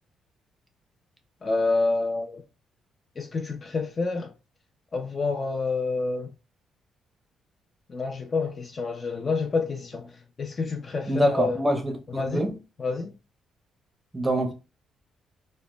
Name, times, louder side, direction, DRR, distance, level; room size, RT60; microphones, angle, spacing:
voice 1, 1.4-2.4 3.2-4.3 4.9-6.3 7.9-11.6 12.1-12.5 12.8-13.1, left 3 dB, 40° left, 0.4 m, -28 dB
voice 2, 11.1-12.6 14.1-14.5, right 1 dB, 15° right, 0.6 m, -25 dB
2.0 x 2.0 x 3.1 m
cardioid pair, 90°, 0 cm